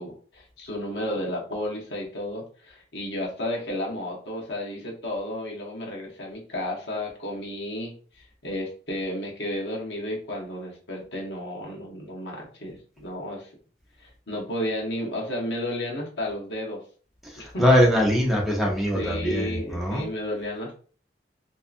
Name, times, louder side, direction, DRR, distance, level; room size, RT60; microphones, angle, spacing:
voice 1, 0.0-13.5 14.0-16.8 17.4-17.6 18.9-20.8, left 1 dB, 85° left, -1 dB, 0.9 m, -32 dB
voice 2, 17.6-20.0, equal, ahead, -3 dB, 0.7 m, -21 dB
2.7 x 2.4 x 2.4 m, 0.42 s
head